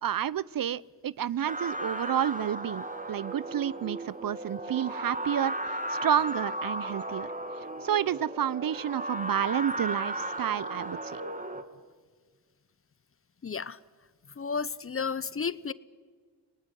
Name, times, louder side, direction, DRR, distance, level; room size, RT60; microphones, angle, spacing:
voice 1, 0.0-7.3 7.6-11.2, right 10 dB, 50° right, 21 dB, 0.6 m, -30 dB
sound 1, 1.5-11.6, right 1 dB, 15° right, 2.3 m, -35 dB
voice 2, 13.4-13.8 14.4-15.7, left 5 dB, 30° left, 18 dB, 0.8 m, -32 dB
23.5 x 18.5 x 9.8 m, 1.5 s
supercardioid pair, 60°, 46 cm